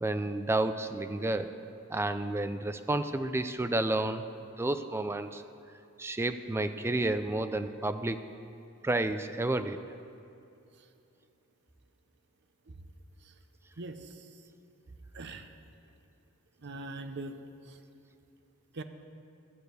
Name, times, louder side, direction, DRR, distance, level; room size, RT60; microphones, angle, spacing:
voice 1, 0.0-1.5 1.9-4.3 4.6-5.4 6.0-8.2 8.8-9.8, right 2 dB, 10° right, 10 dB, 0.3 m, -30 dB
voice 2, 13.8-14.3 15.1-15.5 16.6-17.4 17.7-17.8 18.7-18.8, right 2 dB, 55° right, 8 dB, 0.7 m, -41 dB
12.5 x 6.6 x 8.0 m, 2.6 s
head